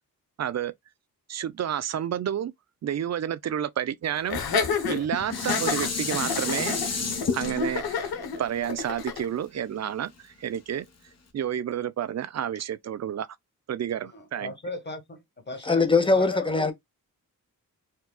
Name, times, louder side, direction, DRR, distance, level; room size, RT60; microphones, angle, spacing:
voice 1, 0.4-0.7 1.3-2.5 2.8-7.0 7.3-8.1 8.4-10.8 11.3-13.3 13.7-14.5, right 10 dB, 50° right, 0.4 m, -30 dB
Laughter, 4.3-9.3, left 5 dB, 85° left, 1.0 m, -29 dB
Dishes pots and pans, 4.7-10.0 10.5-10.6, left 5 dB, 45° left, 1.1 m, -31 dB
voice 2, 14.0-16.7, left 2 dB, 30° left, 1.4 m, -37 dB
voice 3, 15.6-16.7, left 3 dB, 15° left, 0.9 m, -21 dB
4.4 x 2.3 x 2.3 m
cardioid pair, 65°, 36 cm